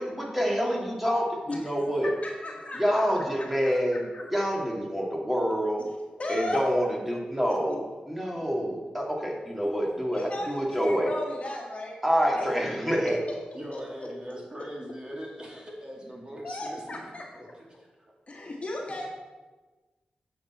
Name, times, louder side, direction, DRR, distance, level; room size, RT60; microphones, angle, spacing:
voice 1, 0.0-2.1 2.7-4.0 4.3-5.8 6.3-11.1 12.0-13.2, equal, 5° right, -1 dB, 2.1 m, -27 dB
voice 2, 1.5-4.2 6.2-6.7 10.1-12.0 12.4-12.5 13.1-13.4 13.7-14.1 14.6-14.7 16.4-17.3 18.3-19.1, left 2 dB, 45° left, 0 dB, 1.6 m, -36 dB
voice 3, 13.5-17.0 17.3-17.5 17.8-17.9 18.7-19.1, equal, 30° right, -3 dB, 2.4 m, -41 dB
8.4 x 6.1 x 4.3 m, 1.3 s
cardioid pair, 65°, 3 cm